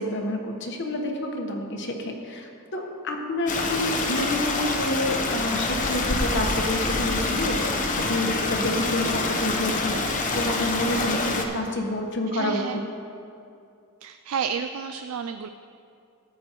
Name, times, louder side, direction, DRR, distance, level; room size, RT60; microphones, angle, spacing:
voice 1, 0.0-12.6, left 1 dB, 55° left, 2 dB, 1.2 m, -29 dB
Stream, 3.5-11.5, left 2 dB, 35° left, 0.9 m, -26 dB
voice 2, 12.3-12.8 14.0-15.5, right 6 dB, 70° right, 8 dB, 0.3 m, -31 dB
14.0 x 9.3 x 3.0 m, 2.5 s
head